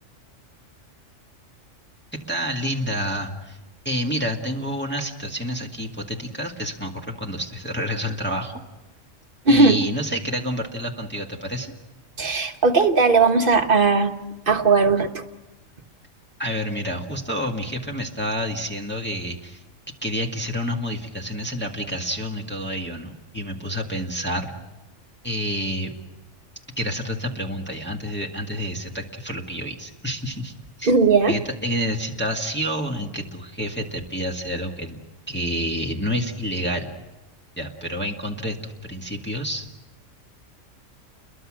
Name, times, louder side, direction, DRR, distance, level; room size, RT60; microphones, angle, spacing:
voice 1, 2.3-3.6 3.9-8.5 9.5-11.7 16.4-19.6 20.0-24.5 25.2-25.9 26.8-30.5 30.8-30.9 31.2-35.0 35.3-36.9 37.6-39.7, equal, 10° left, 0 dB, 1.9 m, -28 dB
voice 2, 9.5-9.8 12.2-14.2 14.5-15.2 30.9-31.3, right 4 dB, 45° right, 7 dB, 1.4 m, -17 dB
30.0 x 22.0 x 6.3 m, 1.0 s
omnidirectional pair, 1.3 m